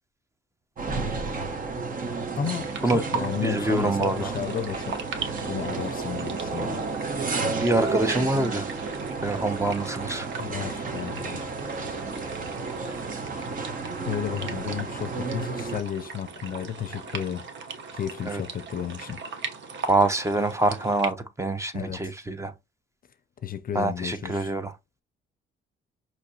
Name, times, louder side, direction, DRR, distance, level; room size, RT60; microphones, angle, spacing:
sound 1, 0.8-15.8, right 4 dB, 45° right, 1.2 m, -32 dB
voice 1, 2.3-5.0 5.5-6.8 10.4-11.5 14.1-17.5 17.9-19.2 21.7-22.1 23.4-24.5, left 9 dB, 45° left, 0.5 m, -33 dB
sound 2, 2.4-21.1, right 5 dB, 65° right, 1.0 m, -39 dB
voice 2, 3.4-4.3 7.5-8.7 9.2-10.3 18.3-18.4 19.9-22.5 23.7-24.7, right 2 dB, 15° right, 0.8 m, -25 dB
5.8 x 3.0 x 2.8 m
cardioid pair, 90°, 20 cm